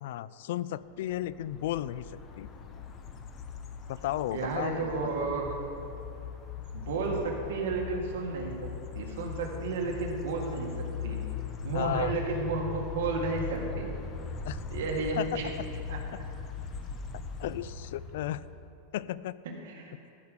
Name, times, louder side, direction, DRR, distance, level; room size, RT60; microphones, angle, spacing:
voice 1, 0.0-2.1 2.4-2.5 3.9-4.9 5.2-5.3 11.7-12.1 14.4-14.6 15.2-15.3 17.4-18.4 18.9-19.4, left 13 dB, 65° left, 17 dB, 0.3 m, -34 dB
sound 1, 1.1-18.6, left 5 dB, 25° left, 0.8 m, -40 dB
voice 2, 4.3-5.5 6.7-10.7 11.0-11.2 11.6-13.9 14.7-15.5 15.9-16.0 19.6-19.9, right 3 dB, 75° right, 0 dB, 1.9 m, -32 dB
13.5 x 5.2 x 6.7 m, 2.8 s
supercardioid pair, 155°, 0 cm